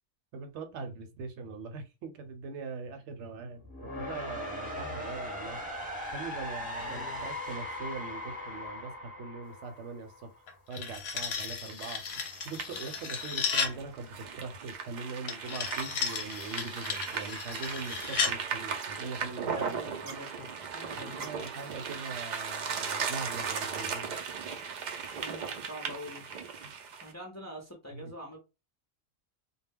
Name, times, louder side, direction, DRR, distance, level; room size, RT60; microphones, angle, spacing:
voice 1, 0.3-20.1 20.9-24.1 27.9-28.1, right 4 dB, 70° right, 0.9 m, -42 dB
sound 1, 3.6-10.5, left 1 dB, 10° right, 0.7 m, -39 dB
voice 2, 6.8-7.4 19.4-21.3 25.1-26.3 27.0-28.4, equal, 25° left, 0.4 m, -45 dB
sound 2, 10.5-13.8 15.3-18.4, left 5 dB, 60° left, 0.8 m, -34 dB
sound 3, 11.7-27.1, right 6 dB, 85° right, 0.4 m, -37 dB
2.2 x 2.0 x 3.4 m
omnidirectional pair, 1.4 m